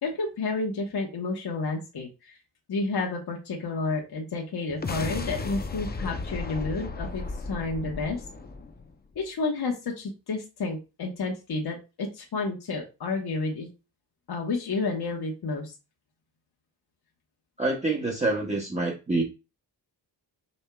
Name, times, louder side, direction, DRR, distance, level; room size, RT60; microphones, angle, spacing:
voice 1, 0.0-2.3 2.7-7.2 7.5-8.2 9.1-13.7 14.3-15.7, left 3 dB, 60° left, 0 dB, 1.2 m, -30 dB
sound 1, 4.7-9.2, left 3 dB, 20° left, 0.6 m, -35 dB
voice 2, 17.6-19.2, right 2 dB, 15° right, 0 dB, 0.9 m, -26 dB
5.4 x 4.3 x 2.3 m, 0.28 s
wide cardioid pair, 115°, 43 cm